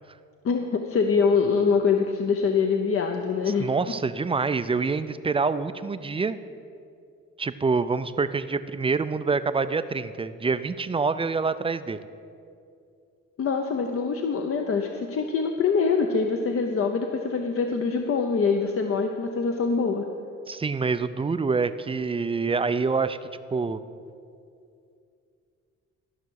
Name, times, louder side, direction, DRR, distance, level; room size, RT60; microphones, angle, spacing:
voice 1, 0.4-3.7 13.4-20.1, left 5 dB, 45° left, 4 dB, 0.7 m, -24 dB
voice 2, 3.6-6.4 7.4-12.0 20.5-23.2 23.5-23.8, right 4 dB, 20° right, 12 dB, 0.4 m, -26 dB
13.0 x 5.9 x 6.4 m, 2.5 s
cardioid pair, 90°, 30 cm